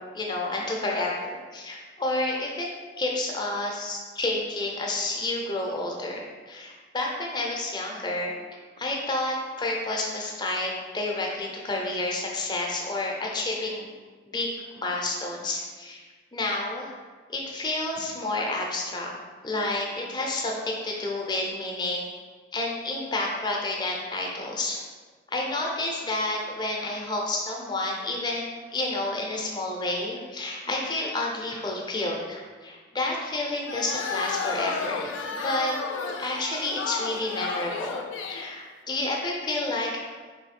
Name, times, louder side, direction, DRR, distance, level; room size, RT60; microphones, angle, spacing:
voice 1, 0.1-2.7 3.0-8.3 8.8-13.9 14.3-16.0 16.3-16.9 17.3-19.1 19.4-22.1 22.5-24.8 25.3-35.7 36.2-38.0 38.3-40.0, left 2 dB, 20° left, -1 dB, 0.6 m, -30 dB
sound 1, 33.7-38.5, left 5 dB, 75° left, 0.4 m, -32 dB
3.5 x 3.1 x 4.2 m, 1.4 s
head